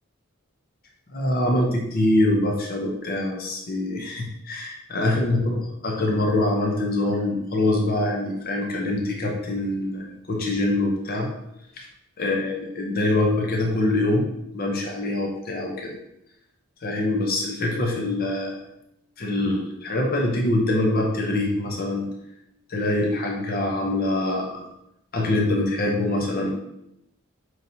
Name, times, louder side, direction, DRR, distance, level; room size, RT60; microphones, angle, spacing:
voice 1, 1.1-11.3 11.8-11.9 12.2-14.3 14.5-15.9 16.8-18.6 19.2-22.1 22.7-24.6 25.1-26.5, left 1 dB, 45° left, 0 dB, 0.7 m, -24 dB
5.5 x 3.1 x 2.7 m, 0.81 s
head